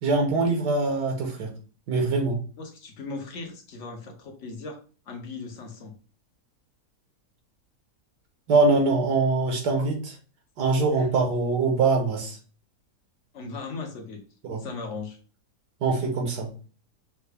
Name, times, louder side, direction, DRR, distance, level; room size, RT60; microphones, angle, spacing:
voice 1, 0.0-1.5 1.9-2.4 8.5-10.1 10.6-12.4 14.4-14.6 15.8-16.5, right 3 dB, 85° right, 2 dB, 1.7 m, -23 dB
voice 2, 2.6-4.8 5.1-6.0 10.9-11.1 13.3-14.2 14.6-15.2, left 3 dB, 55° left, 4 dB, 1.0 m, -38 dB
5.5 x 2.3 x 3.4 m, 0.38 s
omnidirectional pair, 1.8 m